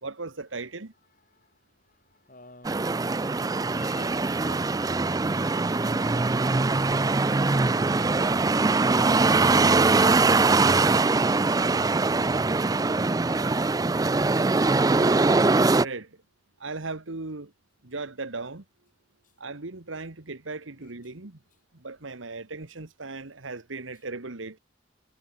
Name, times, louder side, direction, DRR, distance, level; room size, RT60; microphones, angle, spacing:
voice 1, 0.0-0.9 14.9-15.5 15.8-16.2 16.6-17.5 17.8-18.6 19.4-21.4 21.7-24.6, right 3 dB, 80° right, 1.6 m, -37 dB
voice 2, 1.1-6.2 20.7-20.9 23.9-24.0, left 2 dB, 40° left, 8.0 m, -54 dB
sound 1, 2.6-15.9, right 3 dB, 20° right, 0.4 m, -22 dB
head